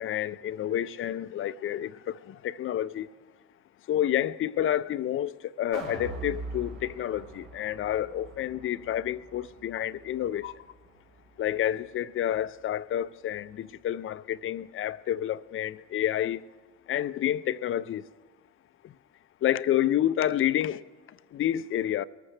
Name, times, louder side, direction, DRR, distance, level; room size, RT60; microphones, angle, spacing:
voice 1, 0.0-3.1 3.9-10.5 11.4-16.4 16.9-18.0 19.4-20.8 21.3-22.0, left 11 dB, 35° left, 0.5 m, -29 dB
sound 1, 5.7-11.9 12.3-12.4, right 3 dB, 75° right, 3.1 m, -43 dB
23.0 x 14.0 x 3.3 m
hypercardioid pair, 75°, 39 cm